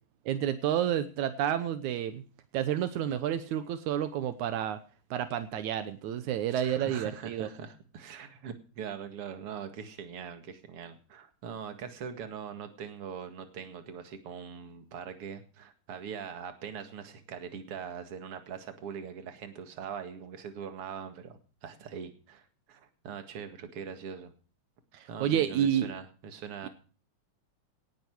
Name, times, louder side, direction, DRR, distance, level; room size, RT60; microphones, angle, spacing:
voice 1, 0.3-2.2 2.5-4.8 5.1-7.5 24.9-25.9, right 10 dB, 80° right, 11 dB, 2.4 m, -30 dB
voice 2, 6.5-24.3 25.1-26.7, right 7 dB, 55° right, 8 dB, 2.7 m, -42 dB
18.0 x 10.5 x 4.6 m, 0.38 s
omnidirectional pair, 3.3 m